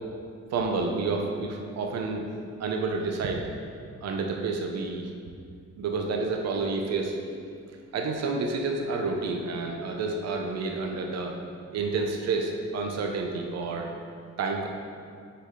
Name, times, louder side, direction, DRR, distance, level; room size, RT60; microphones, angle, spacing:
voice 1, 0.5-2.2 2.6-3.5 4.0-5.1 5.8-11.4 11.7-13.9 14.4-14.7, right 3 dB, 60° right, 2 dB, 0.7 m, -29 dB
6.6 x 4.7 x 3.7 m, 2.2 s
cardioid pair, 115°, 29 cm